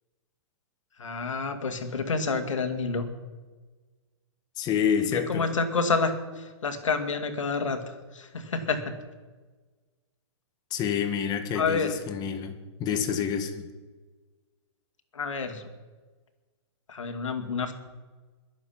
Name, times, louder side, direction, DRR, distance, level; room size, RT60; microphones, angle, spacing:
voice 1, 1.0-3.0 5.3-8.8 11.5-11.9 15.1-15.7 16.9-17.7, left 4 dB, 90° left, 6 dB, 2.3 m, -29 dB
voice 2, 4.6-5.5 10.7-13.7, left 7 dB, 25° left, 8 dB, 1.4 m, -28 dB
22.0 x 7.6 x 5.9 m, 1.3 s
hypercardioid pair, 140°, 16 cm